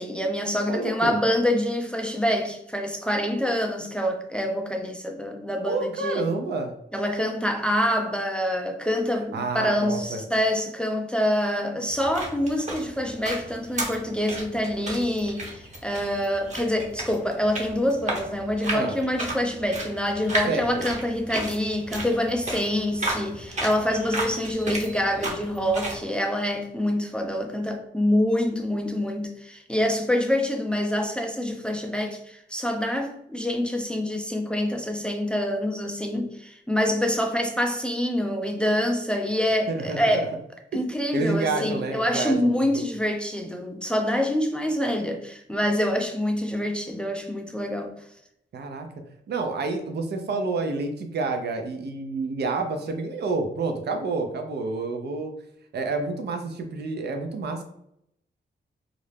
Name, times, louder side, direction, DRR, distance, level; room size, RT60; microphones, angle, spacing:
voice 1, 0.0-6.3 6.9-40.4 40.7-47.9, left 1 dB, 5° left, 0.4 m, -26 dB
voice 2, 0.7-1.1 5.6-6.7 9.3-10.2 18.7-19.0 20.5-20.9 39.7-40.3 41.1-42.7 48.5-48.9 49.3-55.3 55.7-57.6, right 3 dB, 60° right, 0.5 m, -29 dB
sound 1, 11.9-26.0, right 2 dB, 35° right, 0.8 m, -34 dB
2.4 x 2.0 x 3.2 m
cardioid pair, 60°, 20 cm